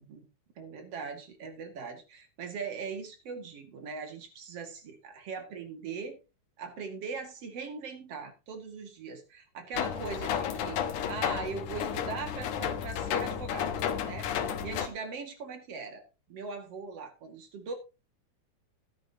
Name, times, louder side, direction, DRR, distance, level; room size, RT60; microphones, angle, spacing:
voice 1, 0.6-6.2 6.6-10.8 11.1-13.7 14.0-14.3 14.6-17.7, right 5 dB, 55° right, 5 dB, 3.0 m, -40 dB
sound 1, 9.7-14.9, left 8 dB, 80° left, 2.6 m, -32 dB
13.5 x 12.0 x 2.9 m, 0.28 s
omnidirectional pair, 3.5 m